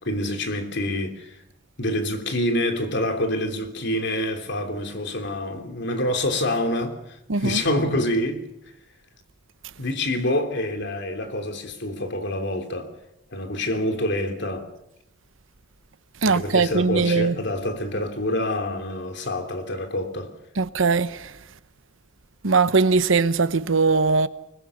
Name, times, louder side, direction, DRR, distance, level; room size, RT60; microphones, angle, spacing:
voice 1, 0.0-1.4 1.8-8.4 9.8-12.9 13.3-14.7 16.2-20.3, left 1 dB, 60° left, 3.2 m, -26 dB
voice 2, 7.3-7.6 16.2-17.4 20.6-21.3 22.4-24.3, right 4 dB, 80° right, 1.0 m, -20 dB
24.0 x 21.0 x 7.1 m
head